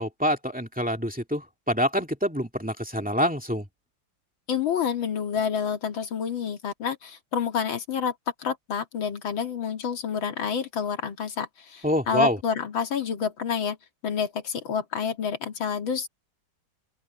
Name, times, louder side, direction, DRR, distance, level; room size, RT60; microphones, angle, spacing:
voice 1, 0.0-3.7 11.8-12.4, equal, 5° right, 2.1 m, -26 dB
voice 2, 4.5-8.1 8.4-13.8 14.0-16.1, left 7 dB, 90° left, 2.7 m, -28 dB
open air
omnidirectional pair, 2.1 m